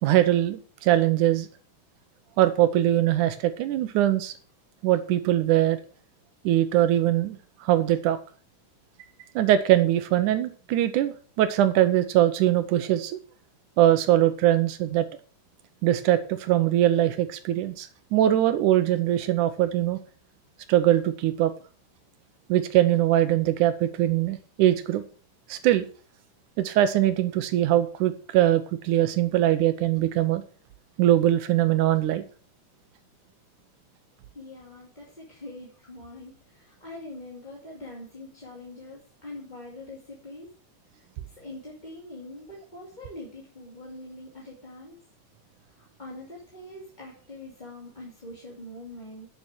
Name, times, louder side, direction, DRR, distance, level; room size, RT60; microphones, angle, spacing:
voice 1, 0.0-1.5 2.4-4.3 4.8-5.8 6.4-8.2 9.4-13.2 13.8-15.1 15.8-20.0 20.7-21.5 22.5-25.0 25.5-25.9 26.6-30.4 31.0-32.2, right 13 dB, 85° right, 11 dB, 2.3 m, -22 dB
voice 2, 34.3-40.5 40.9-45.0 45.7-49.3, left 1 dB, 15° left, -4 dB, 2.2 m, -43 dB
9.5 x 7.2 x 6.1 m, 0.41 s
omnidirectional pair, 3.5 m